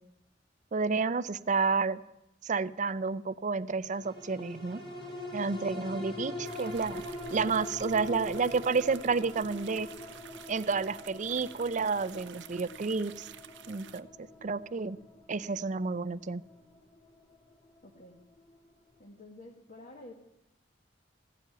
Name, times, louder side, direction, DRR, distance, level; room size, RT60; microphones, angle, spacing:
voice 1, 0.7-2.0 2.4-4.8 5.3-6.3 6.6-7.0 7.3-9.9 10.5-13.3 13.7-14.1 14.4-15.0 15.3-16.4, right 4 dB, 45° right, 16 dB, 0.5 m, -30 dB
sound 1, 3.9-18.6 19.0-19.1, left 1 dB, 30° left, 3.8 m, -43 dB
voice 2, 5.7-6.2 17.8-18.3 19.0-20.1, left 2 dB, 50° left, 0 dB, 1.6 m, -50 dB
sound 2, 6.4-14.0, right 9 dB, 85° right, 0.8 m, -51 dB
15.5 x 7.5 x 9.9 m, 0.87 s
head